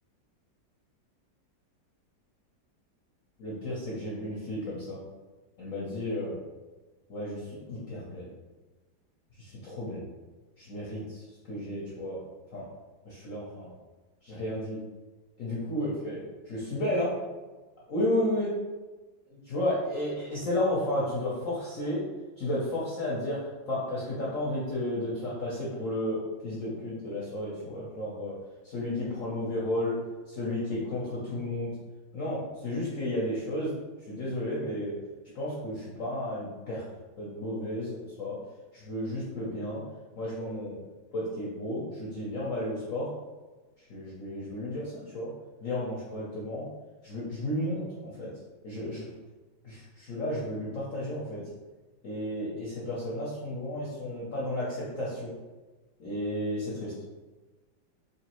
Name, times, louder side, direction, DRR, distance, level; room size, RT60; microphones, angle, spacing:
voice 1, 3.4-5.0 5.6-6.4 7.1-8.3 9.4-10.1 10.6-12.2 12.5-12.7 13.0-13.7 14.2-14.8 15.4-16.2 16.5-17.1 17.9-18.5 19.3-22.0 22.4-28.3 28.6-30.0 30.3-31.7 32.1-33.7 34.1-34.9 35.3-36.8 37.2-38.4 38.7-39.8 40.2-40.8 41.1-43.1 43.9-45.3 45.6-46.7 47.0-48.3 48.6-49.0 49.6-51.4 52.0-55.3 56.0-56.9, left 1 dB, 55° left, -6 dB, 1.0 m, -32 dB
4.0 x 3.1 x 3.0 m, 1.2 s
omnidirectional pair, 2.1 m